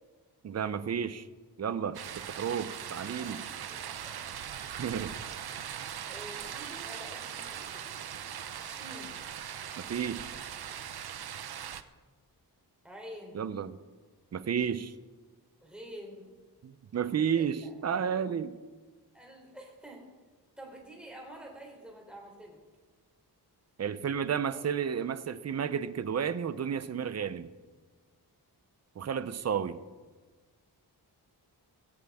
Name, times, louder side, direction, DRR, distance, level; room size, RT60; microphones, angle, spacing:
voice 1, 0.4-1.3 1.6-3.4 4.8-5.2 9.8-10.3 13.3-13.8 14.3-14.9 16.6-18.6 23.8-27.5 29.0-29.8, right 7 dB, 40° right, 13 dB, 0.6 m, -32 dB
sound 1, 1.9-11.8, right 9 dB, 70° right, 0.8 m, -40 dB
voice 2, 3.1-3.4 3.7-4.1 6.0-7.9 8.3-9.2 12.8-13.4 15.6-16.3 17.3-17.7 19.1-20.0 20.6-22.6, equal, ahead, -2 dB, 3.5 m, -48 dB
16.5 x 16.5 x 3.6 m, 1.3 s
wide cardioid pair, 160°, 39 cm